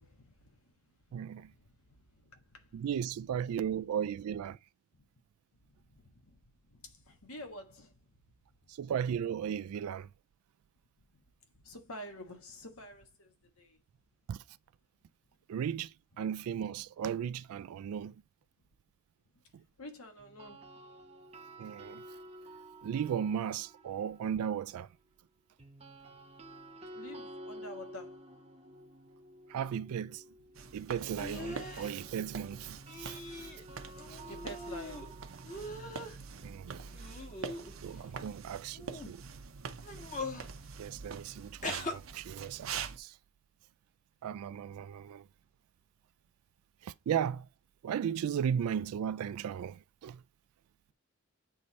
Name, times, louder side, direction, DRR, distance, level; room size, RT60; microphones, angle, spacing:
voice 1, 0.0-2.8 4.9-5.1 5.5-8.2 11.0-11.2 11.5-13.8 19.8-20.7 26.8-28.2 34.3-35.3, left 1 dB, 75° left, 1.5 m, -50 dB
voice 2, 1.1-1.5 2.7-4.6 8.7-10.1 14.3-14.4 15.5-18.1 21.6-22.0 22.8-24.9 29.5-30.2 30.7-33.5 34.1-34.2 36.4-36.9 37.8-39.2 40.8-43.2 44.2-45.3 46.8-47.5 47.8-50.2, right 8 dB, 80° right, 0.3 m, -36 dB
sound 1, 20.2-24.4 25.6-37.5, right 1 dB, 30° right, 0.8 m, -51 dB
sound 2, 30.5-43.0, right 5 dB, 65° right, 0.7 m, -45 dB
sound 3, 31.2-31.9 32.9-33.6 34.0-35.1 35.5-36.2 36.9-38.0 38.8-39.1 39.8-40.5 41.6-41.9, left 2 dB, 35° left, 1.2 m, -41 dB
8.2 x 3.2 x 4.0 m
head